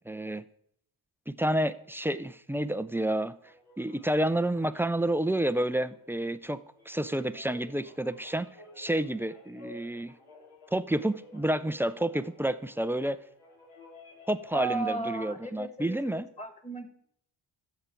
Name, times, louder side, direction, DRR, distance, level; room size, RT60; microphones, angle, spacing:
voice 1, 0.1-0.4 1.3-3.3 3.8-6.6 6.9-8.5 8.8-10.1 10.7-13.2 14.3-16.3, right 1 dB, 5° right, 14 dB, 0.3 m, -29 dB
sound 1, 3.4-15.5, left 2 dB, 75° left, 3.2 m, -54 dB
voice 2, 14.5-16.9, right 3 dB, 15° left, 8 dB, 1.8 m, -35 dB
13.5 x 5.8 x 4.5 m, 0.70 s
supercardioid pair, 50°, 50 cm